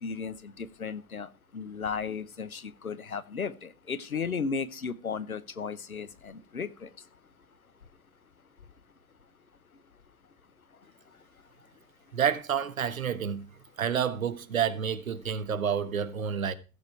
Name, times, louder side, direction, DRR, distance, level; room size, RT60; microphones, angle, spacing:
voice 1, 0.0-6.9, left 5 dB, 85° left, 1.1 m, -35 dB
voice 2, 12.1-13.5 13.8-16.5, right 8 dB, 75° right, 1.4 m, -29 dB
16.0 x 7.2 x 4.5 m
figure-of-eight pair, 95°, 42 cm